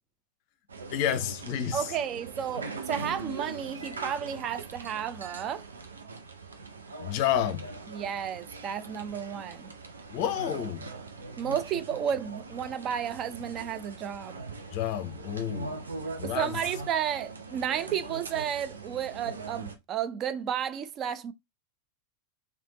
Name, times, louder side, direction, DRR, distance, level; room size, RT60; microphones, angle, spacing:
sound 1, 0.7-19.8, right 3 dB, 75° right, 0.7 m, -41 dB
voice 1, 0.9-1.8 7.0-7.7 10.1-10.9 14.7-15.9 16.2-16.5, left 10 dB, 45° left, 0.6 m, -30 dB
voice 2, 1.7-5.6 7.9-9.7 11.4-14.4 16.2-21.3, right 9 dB, 30° right, 0.5 m, -32 dB
3.4 x 3.2 x 3.9 m
figure-of-eight pair, 90°, 0 cm